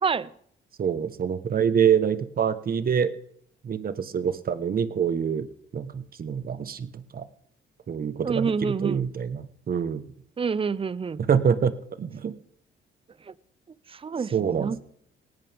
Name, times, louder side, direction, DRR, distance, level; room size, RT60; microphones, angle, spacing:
voice 1, 0.0-0.3 8.2-9.0 10.4-11.2 13.3-13.4 13.9-14.8, right 5 dB, 30° right, 19 dB, 0.7 m, -28 dB
voice 2, 0.8-3.1 3.6-5.5 5.7-7.2 7.9-10.1 11.3-11.7 12.0-12.3 14.3-14.8, right 7 dB, 45° right, 13 dB, 1.2 m, -25 dB
18.5 x 16.5 x 3.6 m, 0.64 s
cardioid pair, 90°, 20 cm